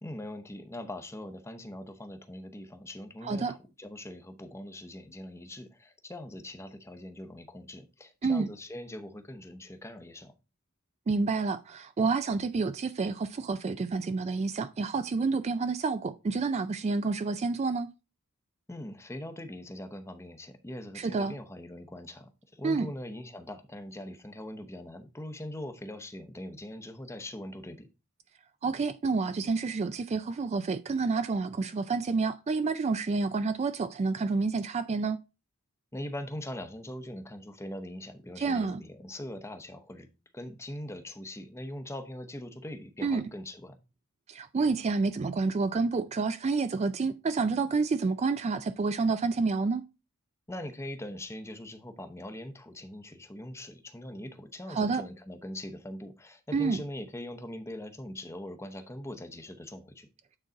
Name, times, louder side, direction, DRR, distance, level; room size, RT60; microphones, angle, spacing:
voice 1, 0.0-10.3 18.7-27.9 35.9-40.1 40.3-43.8 50.5-60.1, left 1 dB, 10° left, 0.7 m, -42 dB
voice 2, 3.2-3.5 8.2-8.5 11.1-17.9 21.0-21.4 22.6-22.9 28.6-35.2 38.4-38.8 43.0-43.2 44.3-49.8 54.7-55.0 56.5-56.8, right 4 dB, 30° right, 0.3 m, -29 dB
8.9 x 3.9 x 3.9 m
head